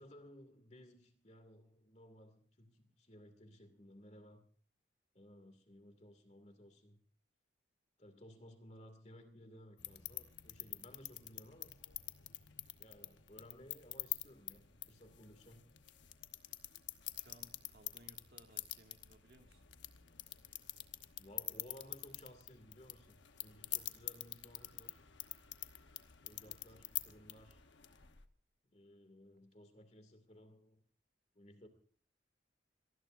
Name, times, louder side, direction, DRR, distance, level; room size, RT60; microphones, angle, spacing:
voice 1, 0.0-4.4 5.1-7.0 8.0-11.8 12.8-15.6 20.4-20.5 21.2-25.0 26.2-27.6 28.6-30.8 31.3-31.7, equal, 35° left, 8 dB, 2.3 m, -58 dB
sound 1, 9.8-28.3, left 14 dB, 75° left, 1.1 m, -47 dB
voice 2, 17.2-19.6 26.4-26.6, right 1 dB, 55° right, 4 dB, 2.1 m, -63 dB
26.0 x 19.0 x 2.6 m, 0.43 s
head